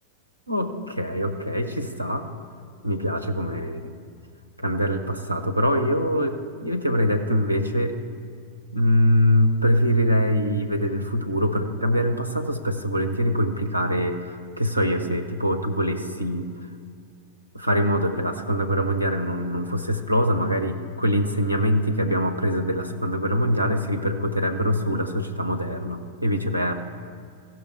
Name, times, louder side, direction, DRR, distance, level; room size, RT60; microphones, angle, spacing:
voice 1, 0.5-2.3 2.8-3.9 4.6-7.9 8.7-16.5 17.5-26.8, equal, 90° right, 5 dB, 0.7 m, -23 dB
15.5 x 6.3 x 4.7 m, 2.2 s
figure-of-eight pair, 90°, 0 cm